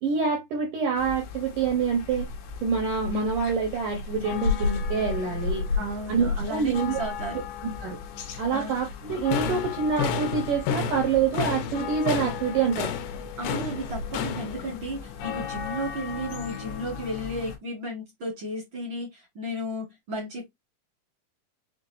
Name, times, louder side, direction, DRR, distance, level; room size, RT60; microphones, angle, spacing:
voice 1, 0.0-2.3 2.6-5.6 6.1-7.0 7.8-8.0 8.4-12.9, right 5 dB, 75° right, 1.9 m, -26 dB
sound 1, 1.0-17.6, left 5 dB, 70° left, 2.7 m, -34 dB
voice 2, 5.8-7.4 8.5-8.7 13.4-20.5, equal, 55° right, 1.3 m, -34 dB
sound 2, 9.1-14.8, left 7 dB, 90° left, 3.0 m, -31 dB
7.2 x 2.5 x 2.7 m
omnidirectional pair, 5.3 m